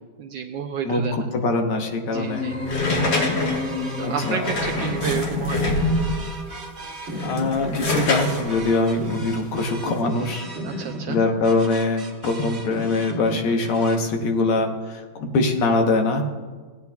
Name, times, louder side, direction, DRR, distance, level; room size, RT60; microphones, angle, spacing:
voice 1, 0.2-1.1 2.0-2.6 2.8-3.5 4.0-5.7 10.6-11.2, right 7 dB, 75° right, 4 dB, 1.1 m, -31 dB
voice 2, 0.8-2.5 4.0-4.5 7.2-16.2, left 3 dB, 80° left, 4 dB, 2.0 m, -23 dB
sound 1, 2.1-4.8, left 3 dB, 40° left, 1.2 m, -30 dB
sound 2, 2.7-6.3 7.0-10.0, left 2 dB, 55° left, 2.2 m, -26 dB
sound 3, 3.0-14.0, right 1 dB, 35° right, 1.4 m, -35 dB
17.0 x 9.5 x 2.3 m, 1.4 s
omnidirectional pair, 2.4 m